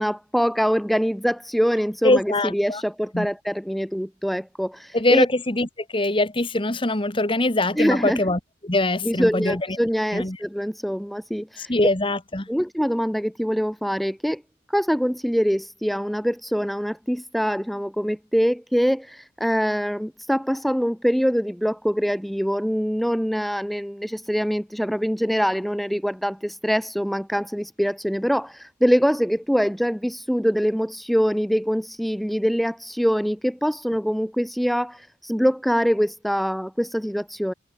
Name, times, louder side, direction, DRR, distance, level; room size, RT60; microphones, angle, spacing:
voice 1, 0.0-5.3 7.8-8.2 9.0-11.7 12.5-14.4 14.7-37.5, equal, ahead, 5.0 m, -24 dB
voice 2, 2.0-2.8 3.1-3.3 4.9-9.6 10.1-10.4 11.6-12.5, left 2 dB, 25° left, 1.6 m, -23 dB
head